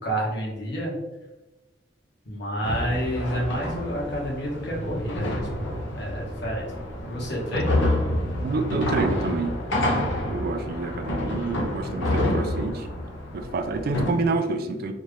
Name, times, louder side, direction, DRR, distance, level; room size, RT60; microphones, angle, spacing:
voice 1, 0.0-1.0 2.2-5.6 5.9-6.7 7.1-7.8, equal, 65° left, -4 dB, 1.4 m, -29 dB
sound 1, 2.6-14.1, left 1 dB, 80° left, 0.8 m, -28 dB
voice 2, 8.4-9.6 10.3-12.9 13.3-14.9, right 3 dB, 55° right, 7 dB, 0.4 m, -27 dB
4.3 x 2.5 x 3.2 m, 1.1 s
head